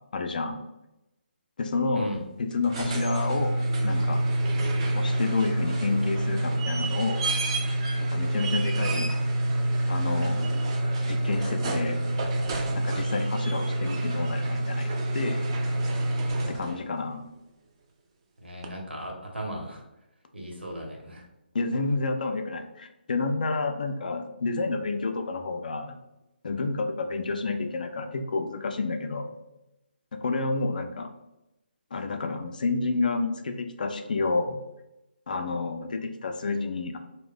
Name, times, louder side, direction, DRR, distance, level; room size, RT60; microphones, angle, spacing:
voice 1, 0.1-0.6 1.6-2.1 2.4-4.2 4.9-7.2 8.0-9.1 9.9-10.6 11.1-12.0 12.7-15.5 16.5-17.3 21.5-26.0 26.4-29.3 30.1-31.1 31.9-34.6 35.3-37.0, left 3 dB, 50° left, 6 dB, 0.3 m, -29 dB
sound 1, 2.5-16.9 18.6-18.7, right 1 dB, 30° right, 0.3 m, -27 dB
voice 2, 18.4-19.8 20.3-21.3, right 1 dB, 75° right, 0 dB, 0.9 m, -37 dB
2.5 x 2.1 x 3.7 m, 0.92 s
figure-of-eight pair, 145°, 6 cm